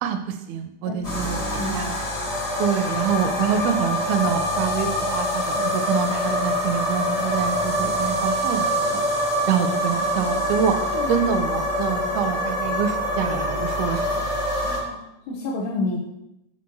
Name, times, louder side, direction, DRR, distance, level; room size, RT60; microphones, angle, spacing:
voice 1, 0.0-1.4 1.7-2.0 2.6-10.8 11.1-14.4, right 8 dB, 80° right, 7 dB, 2.3 m, -26 dB
sound 1, 1.0-14.8, equal, 65° left, 0.5 m, -25 dB
voice 2, 1.2-1.9 10.8-11.2 14.6-16.0, left 2 dB, 85° left, -4 dB, 2.8 m, -30 dB
7.2 x 5.7 x 3.0 m, 0.85 s
omnidirectional pair, 4.6 m